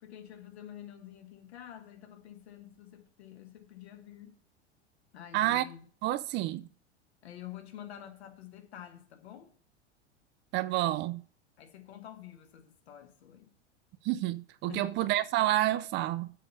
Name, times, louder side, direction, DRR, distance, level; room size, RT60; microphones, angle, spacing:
voice 1, 0.0-4.4 5.1-5.8 7.2-9.5 11.6-13.5 14.7-14.9, left 11 dB, 65° left, 1.7 m, -48 dB
voice 2, 5.3-5.7 6.0-6.7 10.5-11.2 14.0-16.3, right 15 dB, 35° right, 0.5 m, -29 dB
7.5 x 5.4 x 6.8 m
figure-of-eight pair, 85°, 34 cm